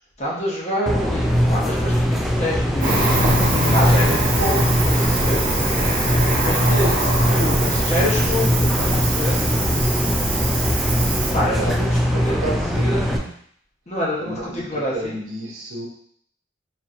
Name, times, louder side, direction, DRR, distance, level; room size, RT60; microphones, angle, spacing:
voice 1, 0.2-3.2 3.7-5.4 6.4-9.4 11.3-13.3 13.9-15.2, left 1 dB, 35° left, -5 dB, 1.0 m, -27 dB
sound 1, 0.9-13.2, equal, ahead, 0.3 m, -21 dB
Cricket, 2.8-11.3, right 2 dB, 40° right, 0.9 m, -24 dB
Motorcycle, 2.9-9.0, left 6 dB, 80° left, 0.3 m, -35 dB
voice 2, 11.3-11.7 12.3-12.6 14.2-14.7 14.9-15.9, right 2 dB, 90° right, -1 dB, 0.8 m, -30 dB
4.2 x 2.9 x 2.5 m, 0.64 s
head